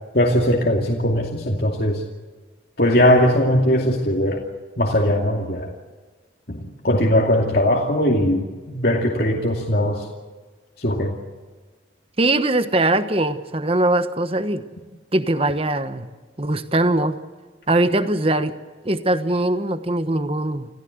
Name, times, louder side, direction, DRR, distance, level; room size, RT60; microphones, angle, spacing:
voice 1, 0.1-2.0 2.8-4.4 4.8-5.7 6.5-10.1 10.8-11.1, left 1 dB, 55° left, 0 dB, 2.5 m, -19 dB
voice 2, 12.2-14.6 15.1-16.1 16.4-17.2 17.7-18.5 18.8-20.7, right 2 dB, 30° right, 10 dB, 1.2 m, -21 dB
27.5 x 16.0 x 8.1 m, 1.4 s
head